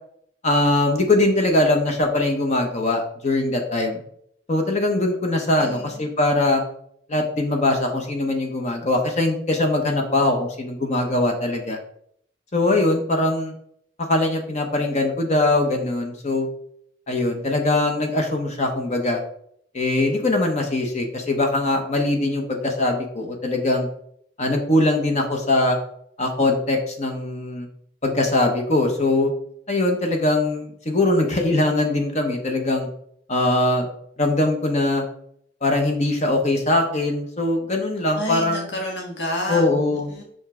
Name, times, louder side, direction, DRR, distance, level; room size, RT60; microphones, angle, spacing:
voice 1, 0.4-4.0 4.5-6.6 7.1-11.8 12.5-13.5 14.0-16.5 17.1-19.2 19.7-23.9 24.4-25.8 26.2-27.7 28.0-29.3 29.7-32.9 33.3-33.9 34.2-35.0 35.6-38.7 39.5-40.1, left 2 dB, 40° left, 3 dB, 0.9 m, -21 dB
voice 2, 5.6-6.0 38.1-39.6 39.9-40.2, left 1 dB, 70° left, 0 dB, 1.5 m, -29 dB
5.9 x 5.2 x 3.7 m, 0.67 s
head